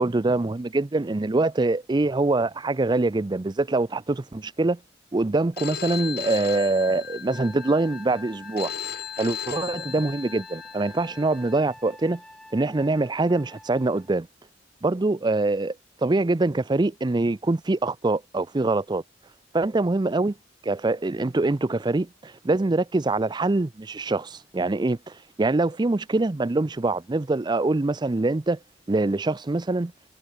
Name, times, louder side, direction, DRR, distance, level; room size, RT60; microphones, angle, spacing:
voice 1, 0.0-4.8 5.1-8.7 9.2-12.2 12.5-14.3 14.8-15.8 16.0-19.0 19.5-20.3 20.6-28.6 28.9-29.9, right 2 dB, 25° right, 0.5 m, -24 dB
Telephone, 5.6-11.5, left 8 dB, 55° left, 4.7 m, -36 dB
Wind instrument woodwind instrument, 7.3-14.1, left 1 dB, 5° left, 7.5 m, -48 dB
head